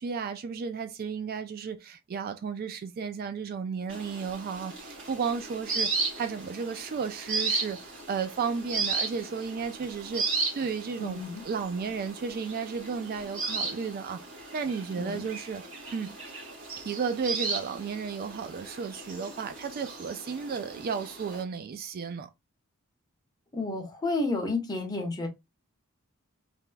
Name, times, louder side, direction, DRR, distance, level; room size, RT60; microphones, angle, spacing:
voice 1, 0.0-7.8 8.1-11.2 11.5-14.2 14.5-15.6 15.9-16.1 16.8-22.3, right 6 dB, 45° right, 0.3 m, -33 dB
sound 1, 3.9-21.4, right 4 dB, 60° right, 1.4 m, -35 dB
voice 2, 11.0-11.4 14.9-15.2 23.5-25.3, left 2 dB, 20° left, 0.9 m, -31 dB
3.3 x 2.9 x 2.2 m
head